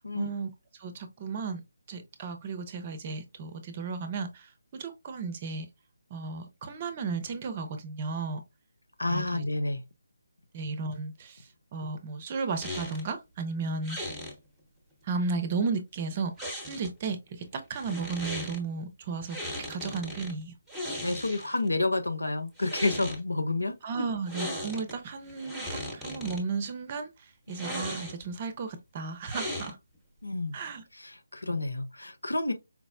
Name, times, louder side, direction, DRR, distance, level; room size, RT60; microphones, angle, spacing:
voice 1, 0.1-0.5 0.8-1.6 1.9-5.7 6.1-8.4 9.1-9.4 10.5-14.0 15.0-20.5 23.8-29.8 30.5-30.8, right 4 dB, 30° right, 0.6 m, -34 dB
voice 2, 9.0-9.8 21.0-23.8 30.2-30.5 31.0-32.5, left 2 dB, 75° left, 0.6 m, -29 dB
sound 1, 12.6-13.1 13.8-14.3 16.4-17.1 17.7-18.6 19.3-20.3 20.7-21.7 22.5-23.2 24.3-24.9 25.3-26.4 27.5-28.3 29.2-30.0, equal, ahead, 0.9 m, -37 dB
4.5 x 2.0 x 2.5 m
figure-of-eight pair, 150°, 0 cm